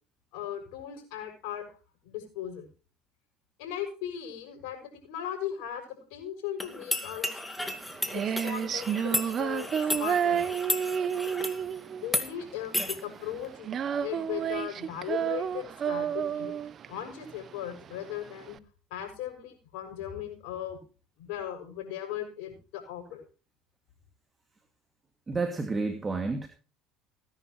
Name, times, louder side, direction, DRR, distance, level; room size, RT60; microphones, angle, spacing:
voice 1, 0.3-1.8 2.0-2.7 3.6-7.3 8.1-10.4 12.0-16.5 16.9-18.6 18.9-20.8 21.2-23.3, left 10 dB, 75° left, 3 dB, 6.7 m, -38 dB
Stirring tea, 6.6-11.6 12.0-12.3 12.7-13.0, left 1 dB, 10° left, 2.3 m, -33 dB
Female singing, 7.6-18.6, right 8 dB, 45° right, 0.9 m, -31 dB
voice 2, 25.3-26.5, right 3 dB, 25° right, 5 dB, 2.5 m, -30 dB
18.5 x 10.5 x 3.2 m, 0.36 s
supercardioid pair, 85°, 0 cm